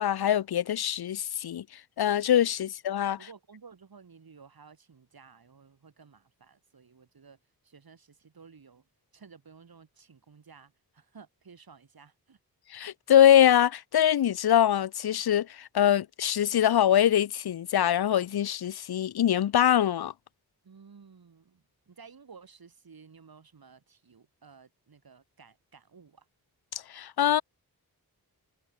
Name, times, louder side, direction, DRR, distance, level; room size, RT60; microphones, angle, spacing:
voice 1, 0.0-1.6 2.0-3.2 12.7-20.1 26.7-27.4, left 10 dB, 80° left, 0.6 m, -23 dB
voice 2, 3.2-7.4 7.6-8.8 9.1-12.4 20.6-26.3, right 5 dB, 70° right, 7.2 m, -54 dB
wide cardioid pair, 125°, 37 cm